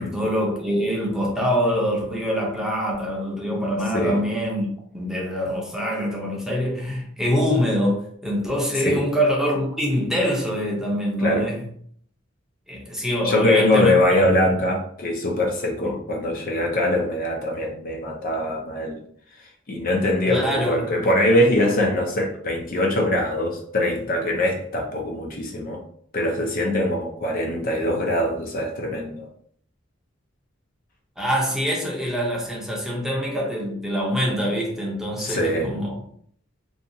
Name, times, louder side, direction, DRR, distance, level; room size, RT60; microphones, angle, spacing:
voice 1, 0.0-4.7 4.9-11.6 12.7-14.0 15.8-15.9 20.3-20.9 31.2-36.0, equal, ahead, -3 dB, 0.6 m, -24 dB
voice 2, 13.2-19.0 19.7-25.8 26.1-29.3 35.2-35.7, left 1 dB, 45° left, 1 dB, 0.5 m, -22 dB
2.6 x 2.3 x 2.7 m, 0.62 s
head